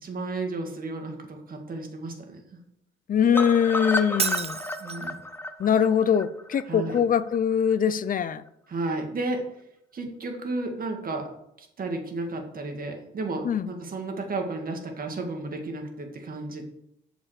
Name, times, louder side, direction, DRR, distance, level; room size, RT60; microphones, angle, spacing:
voice 1, 0.0-2.4 4.8-5.2 6.7-7.0 8.7-9.4 9.9-11.3 11.6-16.6, right 2 dB, 45° right, 2.0 m, -33 dB
voice 2, 3.1-4.6 5.6-8.4 13.4-13.7, left 8 dB, 45° left, 0.5 m, -23 dB
sound 1, 3.3-7.4 7.7-7.8 8.1-8.2 8.5-8.6, left 1 dB, 10° left, 0.8 m, -32 dB
Shatter, 4.2-5.2, right 7 dB, 30° right, 0.5 m, -30 dB
7.2 x 5.5 x 6.5 m
cardioid pair, 90°, 20 cm